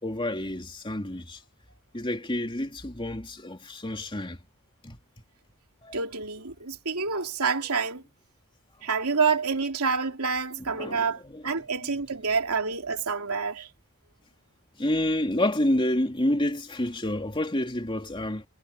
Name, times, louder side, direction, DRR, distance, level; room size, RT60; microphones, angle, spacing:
voice 1, 0.0-1.4 1.9-4.4 4.8-5.0 5.8-6.0 10.6-11.9 14.8-18.4, left 1 dB, 25° left, 2.9 m, -29 dB
voice 2, 5.9-8.0 8.8-13.7, right 5 dB, 85° right, 2.9 m, -28 dB
head